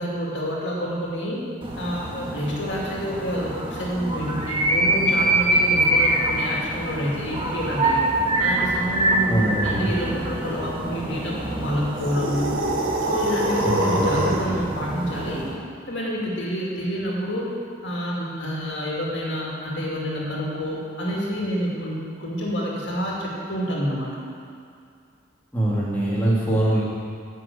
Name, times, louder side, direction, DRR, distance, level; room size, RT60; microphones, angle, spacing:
voice 1, 0.0-1.4 1.8-8.0 8.4-12.6 13.0-15.5 15.9-17.5 17.8-24.2, equal, 65° left, -4 dB, 2.2 m, -28 dB
sound 1, 1.6-15.6, right 1 dB, 25° right, 1.2 m, -25 dB
voice 2, 9.3-9.9 13.6-14.3 25.5-26.8, right 1 dB, 10° left, -8 dB, 2.1 m, -23 dB
sound 2, 11.9-14.6, right 1 dB, 85° right, 1.3 m, -24 dB
9.2 x 6.2 x 8.3 m, 2.3 s
head